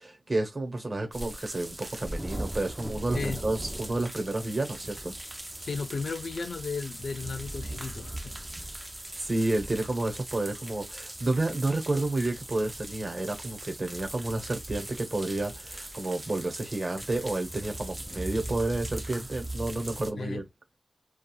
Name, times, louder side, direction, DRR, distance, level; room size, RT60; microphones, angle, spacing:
voice 1, 0.0-5.1 9.2-20.5, right 2 dB, 40° right, 0.9 m, -30 dB
sound 1, 1.1-20.1, right 1 dB, 20° right, 0.4 m, -39 dB
voice 2, 5.6-8.3 20.2-20.4, left 4 dB, 85° left, 0.3 m, -34 dB
3.0 x 2.3 x 2.3 m
wide cardioid pair, 80°, 0 cm